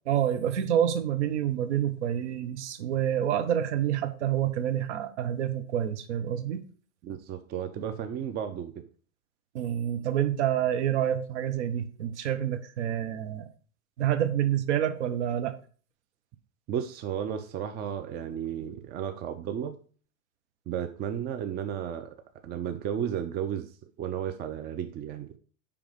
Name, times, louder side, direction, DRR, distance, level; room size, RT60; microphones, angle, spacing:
voice 1, 0.1-6.6 9.5-13.5 14.0-15.5, right 10 dB, 55° right, 8 dB, 1.1 m, -28 dB
voice 2, 7.0-8.8 16.7-19.8 20.7-22.1 22.4-23.7 24.0-25.3, right 9 dB, 25° right, 7 dB, 0.6 m, -33 dB
9.8 x 3.6 x 5.1 m, 0.41 s
figure-of-eight pair, 95°, 41 cm